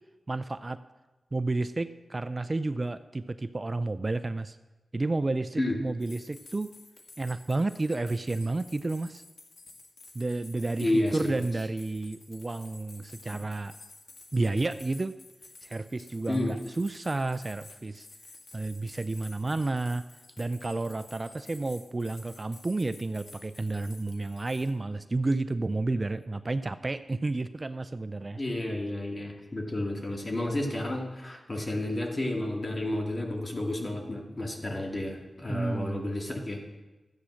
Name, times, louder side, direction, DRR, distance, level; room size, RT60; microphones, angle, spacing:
voice 1, 0.3-0.8 1.3-4.6 4.9-6.7 7.2-9.2 10.1-13.8 14.3-15.1 15.6-18.1 18.5-20.0 20.4-28.4 35.5-36.1, right 2 dB, 35° right, 12 dB, 0.4 m, -31 dB
sound 1, 6.0-24.7, left 3 dB, 65° left, 1.7 m, -52 dB
voice 2, 10.8-11.4 16.3-16.5 28.4-36.6, left 1 dB, 35° left, 1 dB, 2.4 m, -31 dB
13.0 x 8.5 x 6.4 m, 1.1 s
wide cardioid pair, 75°, 0 cm